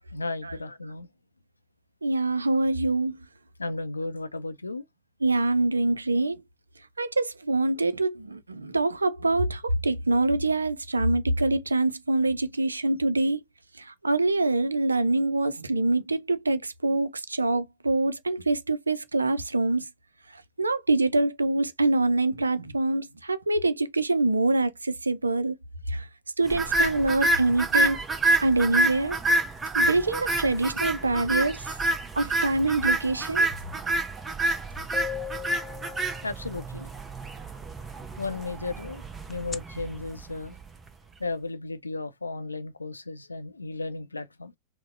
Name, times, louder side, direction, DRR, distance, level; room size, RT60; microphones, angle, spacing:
voice 1, 0.1-1.1 3.6-4.8 36.2-36.9 38.2-40.5 41.2-44.5, left 3 dB, 80° left, 0.5 m, -34 dB
voice 2, 2.0-3.2 5.2-6.4 7.0-13.4 14.0-19.8 20.6-25.5 25.9-26.0 26.4-28.0 28.4-29.2 29.7-31.6 32.2-33.5, right 2 dB, 80° right, 0.4 m, -25 dB
sound 1, 26.5-40.8, right 2 dB, 15° right, 0.7 m, -28 dB
sound 2, 34.4-34.5 34.9-36.7 39.3-39.6, left 9 dB, 15° left, 0.3 m, -37 dB
3.9 x 2.0 x 2.5 m
figure-of-eight pair, 90°, 0 cm